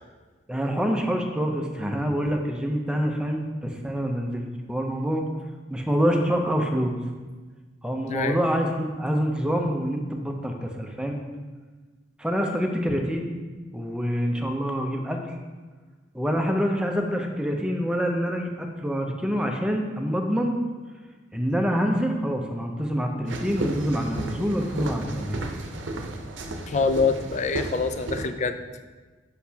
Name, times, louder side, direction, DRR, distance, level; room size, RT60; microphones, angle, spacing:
voice 1, 0.5-5.3 5.7-7.0 7.8-11.2 12.2-13.3 13.7-15.4 16.1-20.5 21.3-25.4, equal, 5° right, 2 dB, 0.6 m, -26 dB
sound 1, 23.3-28.2, right 2 dB, 85° right, 0.7 m, -33 dB
voice 2, 26.7-28.6, left 4 dB, 40° left, 8 dB, 0.4 m, -25 dB
8.1 x 5.7 x 2.8 m, 1.3 s
head